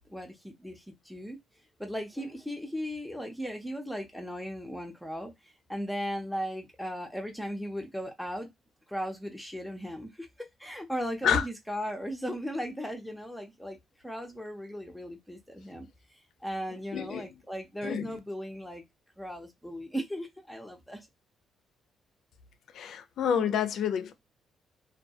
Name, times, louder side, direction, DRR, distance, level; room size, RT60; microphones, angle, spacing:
voice 1, 0.0-1.4 1.8-5.3 5.7-8.5 8.9-13.8 14.0-15.9 16.4-18.8 19.2-21.0, equal, ahead, 0.5 m, -37 dB
voice 2, 16.9-17.3 17.8-18.2 22.7-24.1, left 8 dB, 70° left, 0.4 m, -28 dB
2.2 x 2.2 x 2.6 m
cardioid pair, 90°, 0 cm